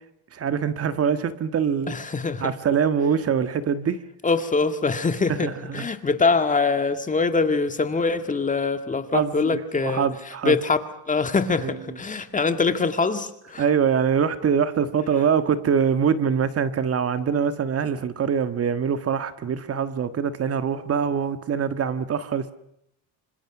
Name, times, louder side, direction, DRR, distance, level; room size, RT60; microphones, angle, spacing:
voice 1, 0.3-1.9 2.4-4.0 5.3-5.9 9.1-10.6 11.6-11.8 13.6-22.5, right 7 dB, 35° right, 1.6 m, -24 dB
voice 2, 1.9-2.5 4.2-10.1 10.4-10.8 11.1-13.6, left 4 dB, 20° left, 2.0 m, -23 dB
27.0 x 26.5 x 6.1 m
cardioid pair, 135°, 41 cm